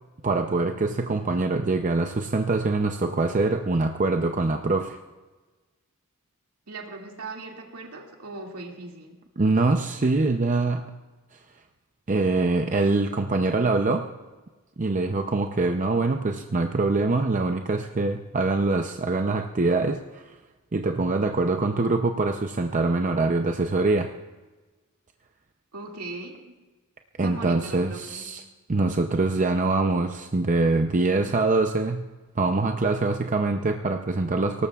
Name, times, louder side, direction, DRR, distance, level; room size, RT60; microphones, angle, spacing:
voice 1, 0.2-5.0 9.4-10.9 12.1-14.1 14.8-20.2 20.7-24.1 27.2-28.4 28.7-32.1 32.4-34.7, right 3 dB, 35° right, 5 dB, 0.6 m, -24 dB
voice 2, 6.7-9.2 25.7-26.3 27.2-28.3, right 3 dB, 90° right, 0 dB, 2.4 m, -39 dB
23.5 x 18.0 x 2.4 m, 1.2 s
head